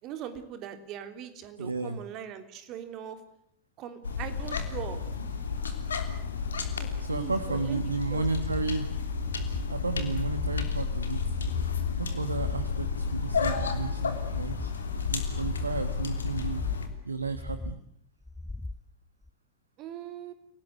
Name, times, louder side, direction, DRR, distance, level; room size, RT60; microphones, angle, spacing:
voice 1, 0.0-3.2 3.8-5.0 6.8-8.3 19.8-20.3, right 9 dB, 35° right, 10 dB, 3.4 m, -41 dB
voice 2, 1.6-2.0 6.8-8.9 9.7-11.2 12.0-14.7 15.1-16.6 17.0-17.8, right 4 dB, 80° right, 12 dB, 1.4 m, -33 dB
sound 1, 4.0-16.9, left 5 dB, 70° left, 3.2 m, -31 dB
sound 2, 9.2-9.7 10.1-10.7 11.1-11.7 12.2-12.7 13.2-13.8 14.2-14.8 15.2-15.8 16.2-16.8 17.2-17.8 18.2-18.8 19.2-19.3, left 2 dB, 5° left, 1.0 m, -39 dB
28.5 x 18.5 x 8.1 m, 0.68 s
figure-of-eight pair, 90°, 0 cm